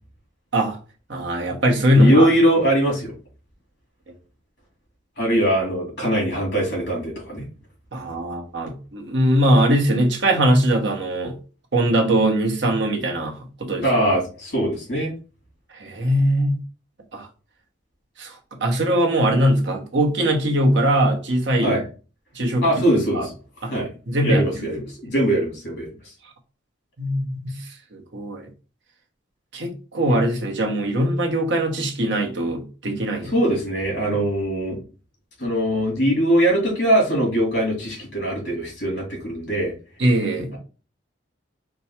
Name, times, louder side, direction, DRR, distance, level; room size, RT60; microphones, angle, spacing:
voice 1, 1.1-2.3 7.9-11.3 11.7-14.0 15.7-16.6 17.1-17.3 18.2-18.4 18.6-21.8 22.3-22.6 23.1-23.3 23.6-23.7 24.1-24.7 27.0-28.5 29.5-33.3 40.0-40.5, right 1 dB, 65° right, 1.0 m, -21 dB
voice 2, 1.9-3.1 5.2-7.4 13.8-15.1 21.6-21.8 22.6-23.3 23.7-23.9 24.2-26.1 33.2-34.8 35.4-39.7, right 1 dB, 55° left, 2.5 m, -21 dB
4.6 x 2.3 x 4.3 m
head